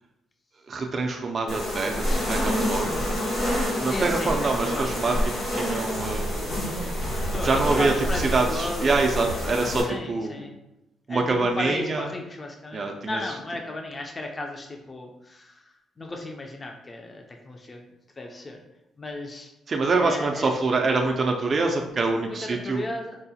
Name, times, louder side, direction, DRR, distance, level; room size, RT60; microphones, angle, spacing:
voice 1, 0.7-3.1 3.8-6.5 7.4-10.5 11.1-12.1 12.7-13.4 19.7-22.8, right 3 dB, 40° right, 2 dB, 0.3 m, -25 dB
Flys on mint, 1.5-9.8, equal, 75° left, 1.3 m, -27 dB
voice 2, 3.9-5.2 7.3-9.0 9.9-10.6 11.1-15.6 16.0-17.8 18.2-18.6 19.0-19.5 19.9-20.5 22.3-23.2, left 2 dB, 30° left, 2 dB, 0.4 m, -35 dB
4.6 x 2.0 x 2.7 m, 0.92 s
cardioid pair, 90°, 0 cm